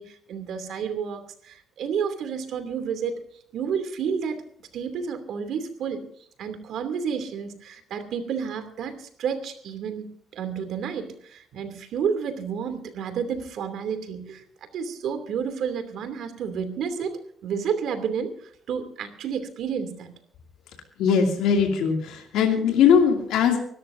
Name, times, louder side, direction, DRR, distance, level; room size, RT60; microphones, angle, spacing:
voice 1, 0.0-3.2 3.5-4.4 4.7-6.0 6.4-14.4 14.7-20.1, right 7 dB, 75° right, 9 dB, 2.7 m, -30 dB
voice 2, 21.0-23.6, left 7 dB, 90° left, 2 dB, 2.6 m, -20 dB
25.0 x 13.0 x 2.7 m, 0.63 s
cardioid pair, 90°, 0 cm